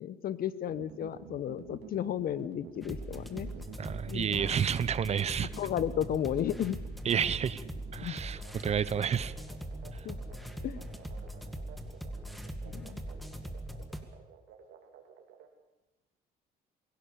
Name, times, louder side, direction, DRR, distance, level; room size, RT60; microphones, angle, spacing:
voice 1, 0.0-3.5 4.1-4.6 5.6-6.8 8.0-8.2 10.0-10.2 10.6-10.8 12.6-13.0, left 10 dB, 60° left, 16 dB, 1.1 m, -33 dB
sound 1, 0.7-15.5, right 9 dB, 85° right, 3.3 m, -50 dB
sound 2, 2.8-14.0, right 1 dB, ahead, 2.1 m, -41 dB
voice 2, 3.8-5.5 7.0-7.6 7.9-9.3 9.9-10.0, right 8 dB, 40° right, 18 dB, 0.8 m, -30 dB
23.5 x 16.5 x 7.1 m, 1.0 s
cardioid pair, 110°, 17 cm